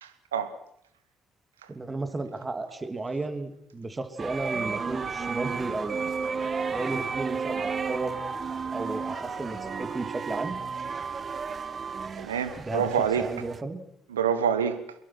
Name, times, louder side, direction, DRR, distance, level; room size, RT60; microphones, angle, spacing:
voice 1, 0.0-0.6 1.6-1.7 12.2-13.3 14.1-14.8, right 7 dB, 85° right, 1.4 m, -27 dB
voice 2, 1.7-6.1 6.7-8.1 8.7-10.6 12.7-12.9 13.2-13.8, right 3 dB, 25° right, 3.0 m, -33 dB
sound 1, 4.2-13.6, right 5 dB, 40° right, 1.0 m, -33 dB
sound 2, 4.5-10.0, left 4 dB, 35° left, 3.8 m, -45 dB
25.0 x 22.0 x 6.3 m
figure-of-eight pair, 45°, 0 cm